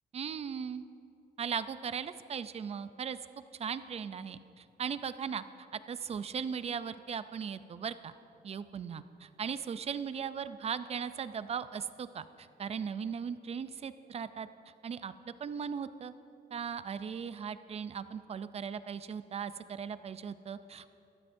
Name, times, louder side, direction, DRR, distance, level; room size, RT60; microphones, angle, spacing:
voice 1, 0.1-0.8 1.4-3.2 3.5-5.4 5.7-8.2 8.4-14.5 14.8-16.1 16.5-20.9, right 7 dB, 40° right, 13 dB, 0.4 m, -38 dB
17.0 x 13.0 x 2.6 m, 2.6 s
cardioid pair, 125°, 17 cm